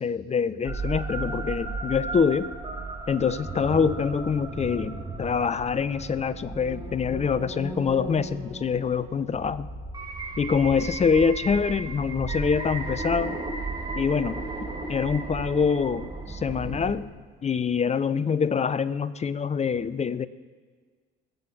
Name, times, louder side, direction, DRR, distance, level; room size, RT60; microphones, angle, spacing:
voice 1, 0.0-2.5 3.1-9.7 10.4-13.4 14.0-14.4 14.9-17.1 17.4-20.3, left 6 dB, 20° left, 16 dB, 0.5 m, -25 dB
sound 1, 0.7-17.0, right 3 dB, 10° right, 2.3 m, -35 dB
20.0 x 7.7 x 5.9 m, 1.5 s
figure-of-eight pair, 50°, 32 cm